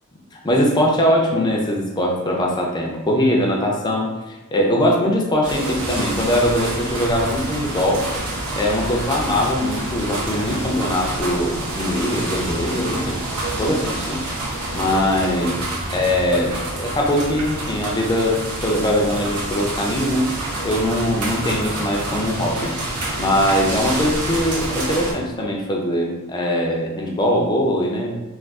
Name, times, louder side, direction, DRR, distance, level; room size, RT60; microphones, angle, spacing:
voice 1, 0.4-8.0 8.6-13.2 13.5-14.2 14.7-15.6 15.9-20.3 20.6-22.7 23.2-28.2, left 1 dB, 20° left, 0 dB, 0.4 m, -21 dB
sound 1, 5.4-25.1, right 1 dB, 85° right, 0.7 m, -27 dB
2.4 x 2.3 x 3.4 m, 1.1 s
head